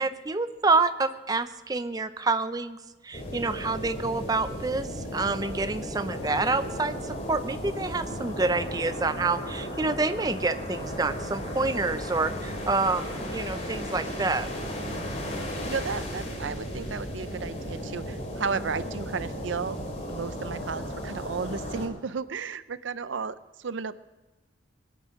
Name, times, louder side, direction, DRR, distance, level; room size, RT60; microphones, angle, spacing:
voice 1, 0.0-2.8 3.0-14.5, right 3 dB, 20° right, 11 dB, 0.5 m, -28 dB
sound 1, 3.1-21.9, equal, 35° left, 2.9 m, -35 dB
voice 2, 15.7-19.8 20.1-24.0, right 5 dB, 80° right, 15 dB, 0.6 m, -33 dB
21.5 x 9.3 x 6.3 m, 1.2 s
head